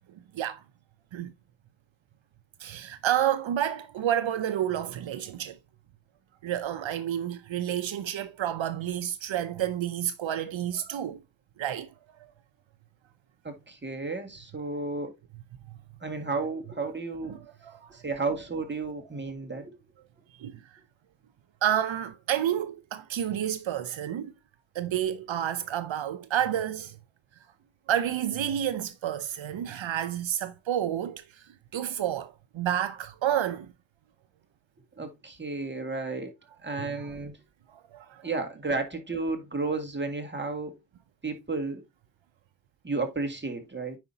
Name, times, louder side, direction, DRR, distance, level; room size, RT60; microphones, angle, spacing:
voice 1, 2.6-5.6 6.4-11.2 11.6-11.9 12.2-12.3 17.3-17.9 20.4-20.6 21.6-24.3 24.7-27.0 27.9-31.4 31.7-33.7 36.8-37.1 37.7-38.3, right 10 dB, 80° right, 0.7 m, -30 dB
voice 2, 13.4-15.1 16.0-17.4 17.9-19.7 35.0-36.3 36.6-37.4 38.2-40.8 41.2-41.8 42.8-44.0, right 3 dB, 25° right, 2.0 m, -32 dB
9.3 x 5.0 x 2.8 m
cardioid pair, 70°, 46 cm